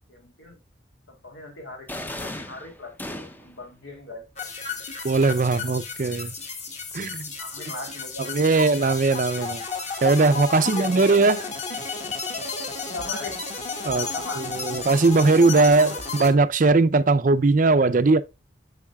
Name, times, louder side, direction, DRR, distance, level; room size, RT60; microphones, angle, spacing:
voice 1, 0.1-0.6 1.1-4.8 7.4-8.8 10.5-11.1 12.5-13.4 13.9-14.8 15.3-15.7, left 2 dB, 80° left, 3.0 m, -40 dB
sound 1, 1.9-3.6, left 1 dB, 10° left, 0.6 m, -36 dB
sound 2, 4.4-16.3, left 4 dB, 35° left, 1.6 m, -33 dB
voice 2, 5.0-6.3 6.9-7.3 8.3-9.6 10.0-11.4 13.8-14.1 14.4-18.2, right 3 dB, 45° right, 0.5 m, -19 dB
8.5 x 6.5 x 2.3 m
head